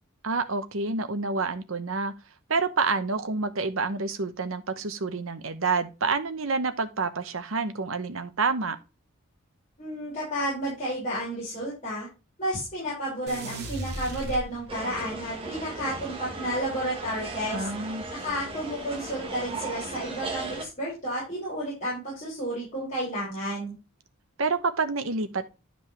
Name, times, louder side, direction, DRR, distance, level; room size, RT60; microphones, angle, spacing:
voice 1, 0.2-2.1 2.5-8.8 17.5-18.0 24.4-25.5, right 4 dB, 80° right, 1.0 m, -28 dB
voice 2, 9.8-12.1 12.4-17.7 18.1-23.7, equal, 35° left, 5.5 m, -31 dB
sound 1, 13.3-15.0, right 1 dB, 50° right, 2.3 m, -36 dB
sound 2, 14.7-20.7, right 3 dB, 25° right, 1.5 m, -37 dB
11.5 x 5.3 x 3.3 m
head